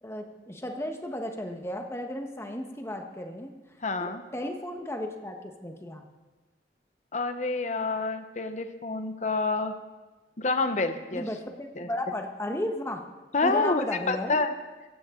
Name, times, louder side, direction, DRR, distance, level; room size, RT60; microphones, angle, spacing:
voice 1, 0.0-3.5 4.0-6.0 11.1-13.0 13.4-14.4, left 1 dB, 15° left, 4 dB, 1.3 m, -34 dB
voice 2, 3.8-4.2 7.1-9.7 10.4-11.2 11.8-11.9 13.3-14.5, left 3 dB, 40° left, 9 dB, 0.9 m, -28 dB
17.0 x 15.0 x 3.8 m, 1.2 s
head